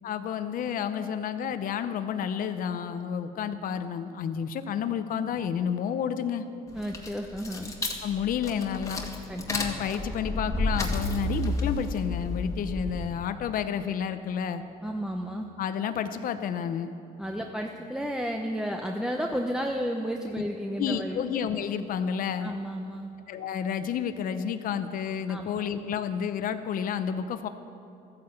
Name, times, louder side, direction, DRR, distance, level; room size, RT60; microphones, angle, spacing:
voice 1, 0.0-6.4 8.0-9.1 9.5-14.6 15.6-16.9 20.8-22.5 23.3-27.5, left 8 dB, 55° left, 9 dB, 0.7 m, -30 dB
sound 1, 6.7-13.3, left 1 dB, 20° left, 1.8 m, -32 dB
voice 2, 6.7-7.7 9.3-9.5 14.8-15.5 17.2-21.2 22.4-23.1 25.3-25.7, equal, 5° right, 2 dB, 0.8 m, -32 dB
14.0 x 9.6 x 7.8 m, 2.7 s
cardioid pair, 110°, 17 cm